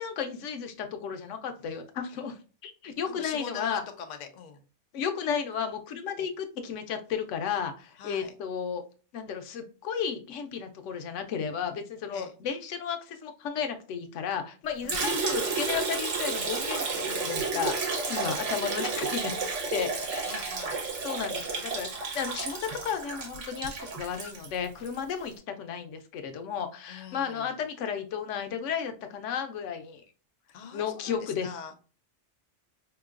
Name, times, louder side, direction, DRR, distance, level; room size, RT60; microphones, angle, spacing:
voice 1, 0.0-3.8 4.9-8.8 9.1-19.3 19.7-20.5 21.0-21.9 22.1-30.0 30.7-31.5, left 7 dB, 90° left, 7 dB, 0.9 m, -33 dB
voice 2, 3.1-4.6 6.2-6.3 8.0-8.3 12.1-12.3 14.8-15.1 18.3-18.5 20.3-20.8 25.1-25.2 26.9-27.6 30.5-31.7, left 6 dB, 55° left, 6 dB, 0.5 m, -43 dB
Liquid, 14.9-25.0, right 4 dB, 80° right, 1.1 m, -31 dB
4.5 x 2.9 x 2.4 m, 0.36 s
omnidirectional pair, 1.2 m